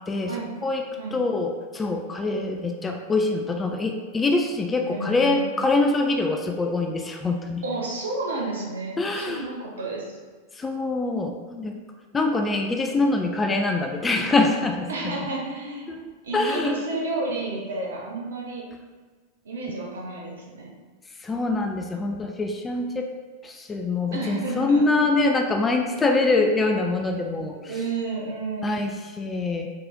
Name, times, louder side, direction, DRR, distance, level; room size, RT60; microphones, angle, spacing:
voice 1, 0.1-0.8 1.1-7.6 9.0-9.5 10.6-11.8 12.1-14.9 15.2-15.3 15.9-16.8 21.2-23.1 23.4-27.7 28.6-29.7, left 3 dB, 15° left, 3 dB, 0.3 m, -24 dB
voice 2, 4.9-5.7 7.6-10.1 14.9-15.9 16.2-18.6 19.4-20.7 24.1-24.8 26.2-26.5 27.6-28.8, right 2 dB, 65° right, -2 dB, 0.9 m, -31 dB
4.5 x 3.0 x 2.5 m, 1.4 s
figure-of-eight pair, 90°, 0 cm